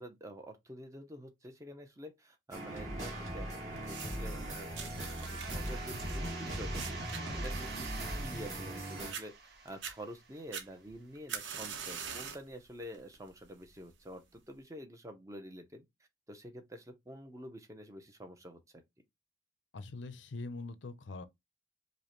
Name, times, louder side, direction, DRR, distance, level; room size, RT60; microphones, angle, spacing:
voice 1, 0.0-4.7 5.1-6.9 7.3-9.3 9.6-15.8 16.3-18.6, equal, 15° right, 0.6 m, -48 dB
sound 1, 2.5-9.1, right 1 dB, 40° right, 1.8 m, -39 dB
sound 2, 3.8-4.4 4.7-8.8 9.1-9.2 9.7-10.0 10.5-12.5 12.9-13.3 14.1-14.2, right 7 dB, 85° right, 0.9 m, -43 dB
sound 3, 5.2-10.7, right 4 dB, 55° right, 0.9 m, -48 dB
voice 2, 19.7-21.2, left 3 dB, 80° left, 0.5 m, -43 dB
5.1 x 2.1 x 3.0 m
head